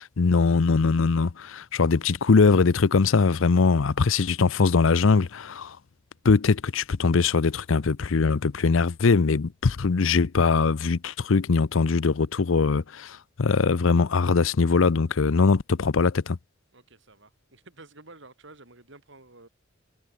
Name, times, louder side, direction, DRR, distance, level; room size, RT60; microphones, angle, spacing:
voice 1, 0.0-5.8 6.2-16.4, left 4 dB, 75° left, 0.6 m, -21 dB
voice 2, 16.7-19.5, right 2 dB, 65° right, 5.5 m, -50 dB
head